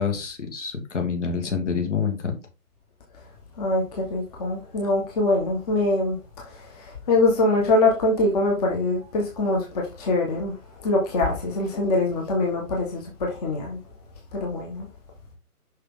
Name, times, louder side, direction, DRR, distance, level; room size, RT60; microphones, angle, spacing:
voice 1, 0.0-2.4, left 6 dB, 50° left, 2.3 m, -27 dB
voice 2, 3.6-6.2 7.1-10.5 10.8-13.8 14.3-14.8, left 2 dB, 25° left, 1.5 m, -23 dB
6.5 x 6.0 x 3.8 m
figure-of-eight pair, 140°, 45 cm